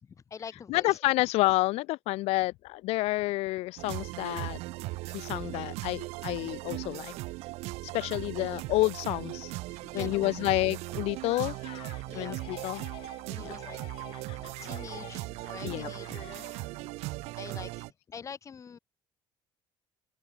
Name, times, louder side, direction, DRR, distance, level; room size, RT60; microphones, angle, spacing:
voice 1, 0.0-1.0 4.4-4.5 5.2-5.3 7.9-8.0 9.7-10.5 12.0-12.8 13.2-13.9 14.2-16.9 17.4-18.8, left 6 dB, 30° left, 2.6 m, -46 dB
voice 2, 0.7-4.6 5.1-7.1 7.9-9.5 9.9-11.5 12.1-12.8 13.4-13.5 15.6-15.9, left 20 dB, 75° left, 0.8 m, -29 dB
sound 1, 3.8-17.9, right 21 dB, 85° right, 2.9 m, -38 dB
Laughter, 11.1-12.1 12.3-13.2 13.5-16.9, left 14 dB, 60° left, 3.8 m, -49 dB
cardioid pair, 140°, 11 cm